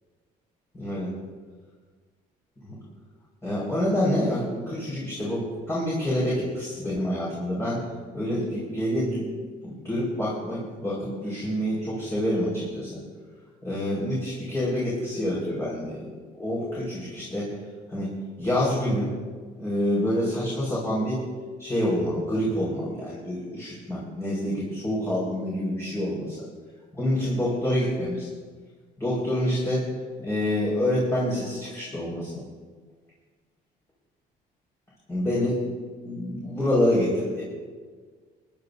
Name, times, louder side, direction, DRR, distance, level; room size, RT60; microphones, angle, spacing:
voice 1, 0.7-1.1 2.6-2.7 3.4-7.8 8.1-9.2 9.6-13.0 13.6-16.1 16.3-17.5 17.9-18.1 18.4-19.1 19.6-21.2 21.6-26.4 26.9-28.3 29.0-29.9 30.2-32.4 35.1-35.6 36.0-37.4, left 1 dB, 15° left, -7 dB, 5.0 m, -27 dB
26.5 x 11.5 x 2.7 m, 1.5 s
cardioid pair, 110°, 17 cm